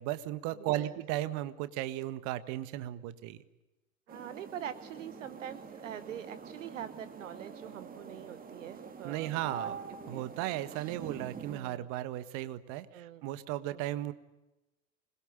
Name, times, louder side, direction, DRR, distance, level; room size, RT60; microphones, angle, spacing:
voice 1, 0.0-3.4 9.0-9.8 10.1-14.1, right 14 dB, 45° right, 13 dB, 1.7 m, -35 dB
voice 2, 0.6-0.9 4.1-9.3 9.6-9.7 10.1-10.3 11.5-11.9 12.9-13.2 13.7-13.8, right 10 dB, 65° right, 14 dB, 1.2 m, -44 dB
sound 1, 4.1-11.6, right 6 dB, 20° right, 2.7 m, -45 dB
26.5 x 21.5 x 9.0 m, 1.0 s
figure-of-eight pair, 85°, 41 cm